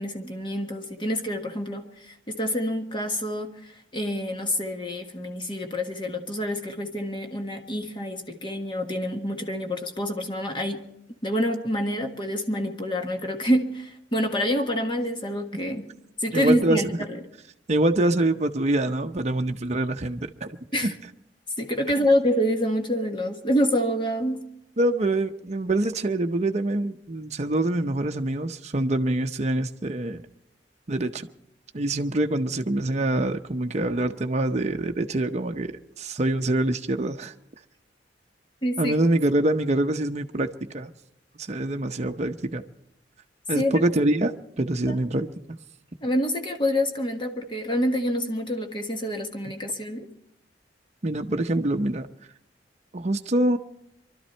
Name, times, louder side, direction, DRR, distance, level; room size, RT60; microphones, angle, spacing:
voice 1, 0.0-10.9 11.2-15.9 16.2-17.2 20.7-20.9 21.6-24.4 38.6-38.9 43.5-43.8 44.9-45.0 46.0-50.1, equal, 30° left, 1.6 m, -27 dB
voice 2, 16.3-16.8 17.7-20.9 24.8-30.2 30.9-31.3 31.7-37.3 38.8-40.9 41.3-42.6 43.5-45.6 51.0-52.1 52.9-53.6, right 1 dB, 40° right, 0.7 m, -25 dB
24.0 x 12.5 x 4.4 m
head